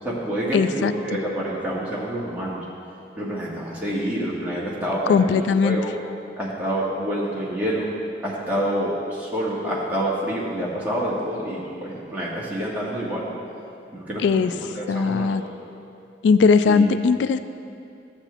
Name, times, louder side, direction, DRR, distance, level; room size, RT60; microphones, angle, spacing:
voice 1, 0.0-2.6 3.1-6.0 6.4-7.9 8.2-13.3 13.9-15.5 16.6-16.8, right 1 dB, 10° right, -7 dB, 1.7 m, -27 dB
voice 2, 0.5-0.9 5.1-5.8 14.2-14.5 14.9-15.4 16.2-17.4, left 5 dB, 90° left, 12 dB, 0.3 m, -19 dB
13.5 x 7.2 x 3.4 m, 2.7 s
head